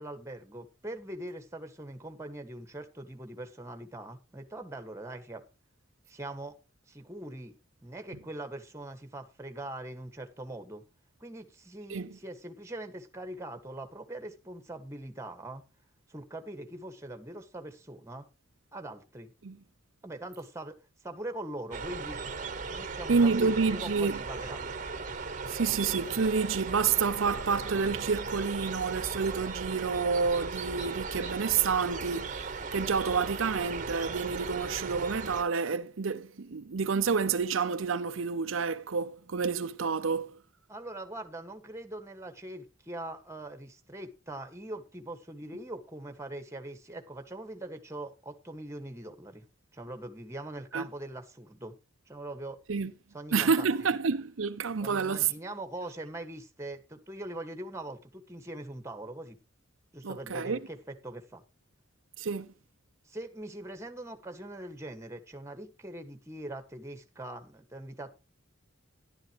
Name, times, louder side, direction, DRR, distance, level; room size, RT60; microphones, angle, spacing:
voice 1, 0.0-5.4 6.1-6.6 6.9-7.6 7.8-10.8 11.2-15.6 16.1-18.3 18.7-19.3 20.0-20.7 21.0-22.2 22.7-24.6 40.7-49.4 49.7-51.7 52.1-52.6 53.1-53.9 54.8-59.4 59.9-61.4 63.0-68.1, right 1 dB, 15° right, 1.7 m, -42 dB
sound 1, 21.7-35.4, right 4 dB, 40° right, 1.2 m, -37 dB
voice 2, 23.1-24.2 25.5-40.4 50.7-50.9 52.7-52.9 53.3-55.3 60.0-60.6 62.2-62.5, right 5 dB, 75° right, 0.7 m, -29 dB
13.0 x 11.5 x 3.1 m
head